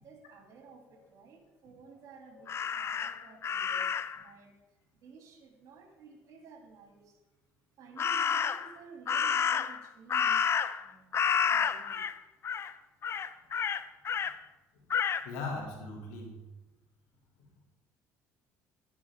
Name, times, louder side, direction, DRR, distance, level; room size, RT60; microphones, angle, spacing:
voice 1, 0.0-4.5 4.9-7.2 7.8-10.5 10.8-11.2 11.5-12.0, right 5 dB, 60° right, 2 dB, 2.7 m, -54 dB
Crow, 2.5-4.2 8.0-8.7 9.1-10.9 11.1-12.1 12.4-12.7 13.0-14.3 14.9-15.2, left 7 dB, 40° left, 0.6 m, -30 dB
voice 2, 15.2-16.3, left 3 dB, 85° left, 0 dB, 2.8 m, -38 dB
11.5 x 10.5 x 3.6 m, 1.1 s
supercardioid pair, 75°, 6 cm